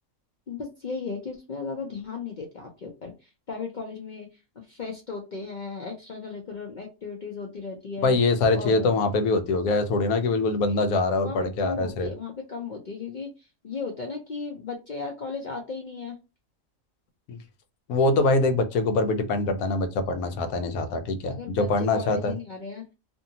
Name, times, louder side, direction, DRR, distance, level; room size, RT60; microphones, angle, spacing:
voice 1, 0.5-4.3 4.6-8.2 8.5-8.9 11.2-16.2 21.3-22.8, left 4 dB, 60° left, 0.5 m, -36 dB
voice 2, 8.0-12.1 17.3-17.4 17.9-22.4, left 3 dB, 85° left, 1.1 m, -24 dB
2.6 x 2.6 x 2.7 m
omnidirectional pair, 1.5 m